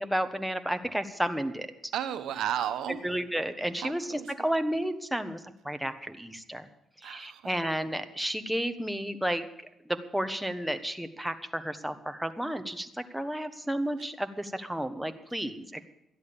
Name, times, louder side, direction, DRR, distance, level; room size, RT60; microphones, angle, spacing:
voice 1, 0.0-1.9 3.0-5.4 5.6-6.7 7.0-9.4 9.8-15.9, right 1 dB, 5° right, 8 dB, 1.2 m, -32 dB
voice 2, 1.9-3.0 3.8-4.3 7.0-7.6, right 10 dB, 80° right, 9 dB, 1.1 m, -33 dB
13.0 x 11.0 x 6.9 m, 0.84 s
cardioid pair, 90°, 0 cm